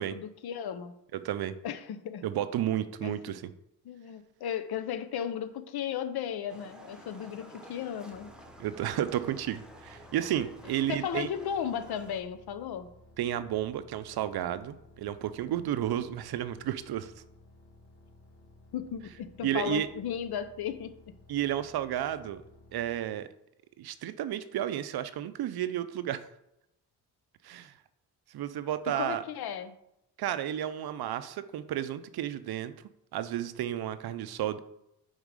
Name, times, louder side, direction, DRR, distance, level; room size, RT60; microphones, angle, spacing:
voice 1, 0.0-0.9 1.6-2.2 3.0-3.3 3.8-8.4 10.9-12.9 18.7-20.9 28.9-29.7, left 8 dB, 65° left, 12 dB, 0.6 m, -35 dB
voice 2, 1.1-1.5 2.2-3.5 8.6-11.3 13.2-17.1 19.4-19.9 21.3-22.4 22.7-23.3 23.8-26.3 27.4-27.7 28.3-29.2 30.2-32.7 33.1-34.6, right 11 dB, 65° right, 13 dB, 0.6 m, -32 dB
Livestock farm animals working animals, 6.5-12.2, equal, ahead, 1.0 m, -51 dB
sound 1, 8.1-23.0, left 2 dB, 85° left, 1.2 m, -57 dB
5.3 x 3.6 x 4.8 m, 0.81 s
cardioid pair, 80°, 42 cm